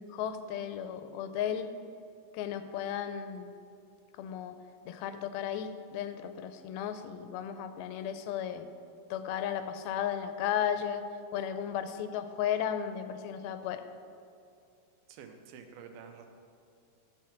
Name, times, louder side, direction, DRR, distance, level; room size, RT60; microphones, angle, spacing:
voice 1, 0.0-1.7 2.3-3.6 4.2-4.6 4.9-8.7 9.1-11.0 11.3-13.8, left 9 dB, 85° left, 9 dB, 2.4 m, -34 dB
voice 2, 15.1-16.3, right 6 dB, 80° right, 5 dB, 2.5 m, -49 dB
11.5 x 4.5 x 7.2 m, 2.5 s
omnidirectional pair, 4.4 m